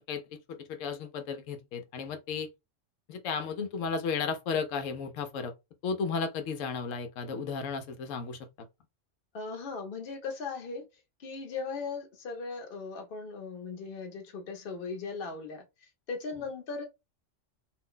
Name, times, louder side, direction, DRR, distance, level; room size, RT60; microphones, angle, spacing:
voice 1, 0.0-2.5 3.1-5.5 5.8-8.5, left 5 dB, 85° left, 1.0 m, -34 dB
voice 2, 9.3-10.9 11.2-15.6 16.1-16.8, left 4 dB, 50° left, 0.9 m, -38 dB
2.6 x 2.1 x 3.6 m
omnidirectional pair, 1.3 m